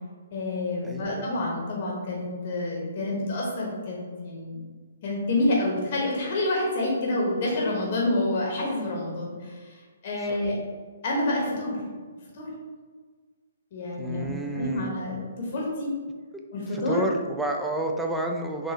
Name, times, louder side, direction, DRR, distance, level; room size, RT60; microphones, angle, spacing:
voice 1, 0.3-4.6 5.0-9.7 10.0-10.6 11.0-11.8 12.3-12.5 13.7-15.9 16.5-17.0, left 2 dB, 45° left, -2 dB, 0.9 m, -28 dB
voice 2, 0.8-1.3 10.3-10.4 14.0-14.9 16.7-18.7, right 1 dB, 5° right, 2 dB, 0.3 m, -30 dB
4.0 x 2.6 x 2.7 m, 1.5 s
figure-of-eight pair, 130°, 0 cm